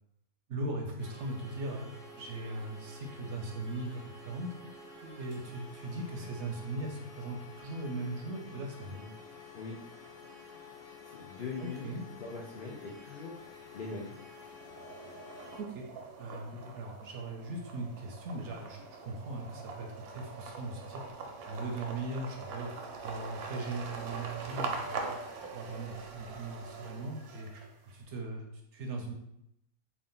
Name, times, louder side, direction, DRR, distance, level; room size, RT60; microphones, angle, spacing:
voice 1, 0.5-4.5 5.0-9.0 11.6-12.0 15.6-15.9 16.2-21.0 21.5-22.7 23.0-25.1 25.5-27.5 27.9-29.1, right 2 dB, 65° right, 1 dB, 0.8 m, -39 dB
sound 1, 1.0-15.6, left 3 dB, 50° left, 0.8 m, -50 dB
voice 2, 8.9-9.2 9.5-9.8 11.0-14.2 16.5-16.8, left 4 dB, 85° left, -2 dB, 0.4 m, -42 dB
sound 2, 13.4-14.0 14.4-27.9, right 4 dB, 90° right, 1.1 m, -43 dB
3.5 x 2.4 x 3.8 m, 0.81 s
omnidirectional pair, 1.6 m